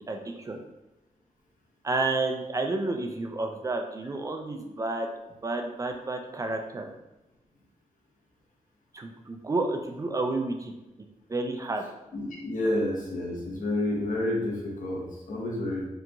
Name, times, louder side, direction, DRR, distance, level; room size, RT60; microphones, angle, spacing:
voice 1, 0.1-0.6 1.8-5.1 5.4-6.9 8.9-10.7 11.3-11.8, right 2 dB, 25° right, 4 dB, 0.3 m, -30 dB
voice 2, 12.1-15.9, left 1 dB, 85° left, -2 dB, 0.9 m, -29 dB
3.5 x 2.8 x 2.5 m, 0.98 s
wide cardioid pair, 175°, 13 cm